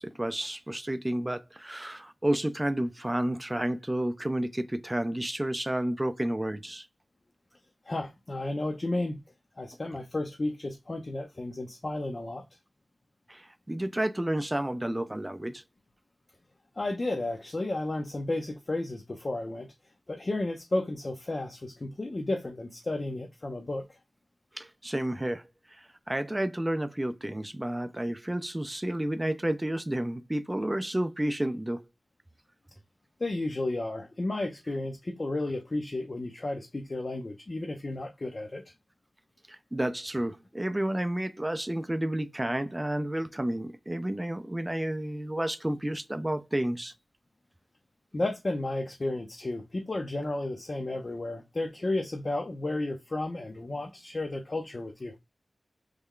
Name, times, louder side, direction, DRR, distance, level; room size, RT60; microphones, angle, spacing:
voice 1, 0.0-6.9 13.3-15.6 24.6-25.4 26.1-31.8 39.5-46.9, right 1 dB, 20° right, 0.4 m, -31 dB
voice 2, 7.9-9.2 9.6-12.4 16.8-19.7 20.1-23.9 33.2-38.6 48.1-55.1, left 2 dB, 45° left, 0.6 m, -32 dB
3.2 x 2.3 x 3.6 m
wide cardioid pair, 65°, 0 cm